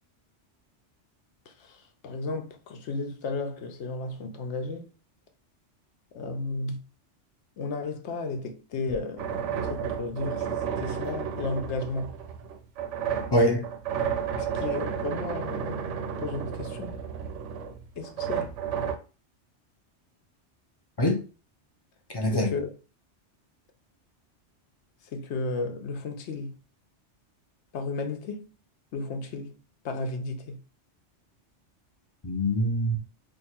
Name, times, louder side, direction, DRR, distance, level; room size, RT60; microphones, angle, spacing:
voice 1, 1.5-4.9 6.1-6.8 7.6-12.2 14.5-15.9 16.2-17.0 18.0-18.5 22.3-22.7 25.0-26.5 27.7-28.5 28.9-29.6 29.8-30.6, left 3 dB, 75° left, 0.9 m, -34 dB
sound 1, 9.2-19.0, right 7 dB, 85° right, 0.9 m, -32 dB
voice 2, 13.3-13.7 21.0-21.2 22.1-22.5 32.2-33.0, equal, 30° left, 0.5 m, -24 dB
2.9 x 2.4 x 4.2 m
omnidirectional pair, 1.2 m